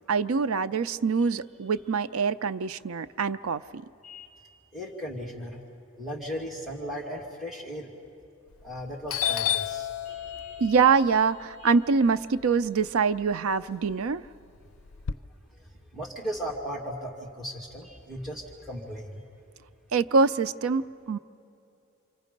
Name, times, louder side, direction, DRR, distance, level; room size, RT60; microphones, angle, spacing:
voice 1, 0.1-3.8 10.6-14.2 19.9-21.2, right 5 dB, 90° right, 14 dB, 0.5 m, -24 dB
voice 2, 4.7-5.6 6.0-7.9 8.6-10.9 11.6-11.7 15.6-15.7 15.9-19.2, equal, ahead, -4 dB, 2.2 m, -37 dB
Doorbell, 8.5-8.8 9.1-13.2 13.6-15.1, left 10 dB, 80° left, 0.4 m, -32 dB
28.5 x 25.5 x 5.3 m, 2.7 s
head